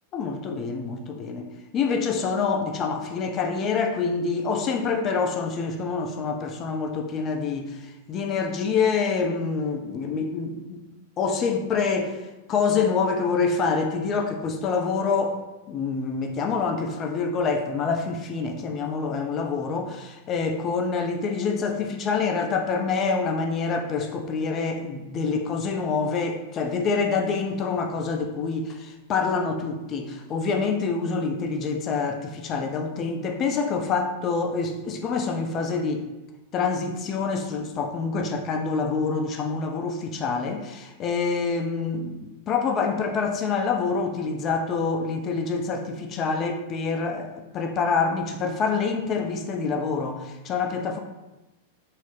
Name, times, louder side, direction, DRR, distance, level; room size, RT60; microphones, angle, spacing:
voice 1, 0.1-10.8 11.2-12.2 12.5-15.4 15.7-36.0 36.5-51.0, left 5 dB, 30° left, 4 dB, 0.4 m, -26 dB
3.1 x 2.0 x 3.1 m, 1.0 s
figure-of-eight pair, 95°, 0 cm